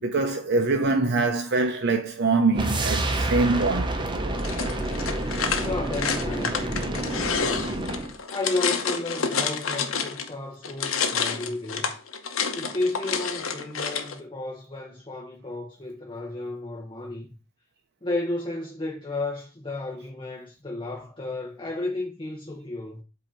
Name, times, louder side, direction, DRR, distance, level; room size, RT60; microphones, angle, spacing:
voice 1, 0.0-4.0, right 3 dB, 55° right, 0.6 m, -24 dB
sound 1, 2.5-8.2, right 2 dB, 25° right, 0.8 m, -28 dB
sound 2, 4.4-10.3 10.6-14.2, left 6 dB, 90° left, 0.9 m, -29 dB
voice 2, 5.6-7.3 8.3-12.0 12.5-17.3 18.0-23.0, left 2 dB, 25° left, 0.9 m, -33 dB
7.9 x 2.8 x 4.4 m
head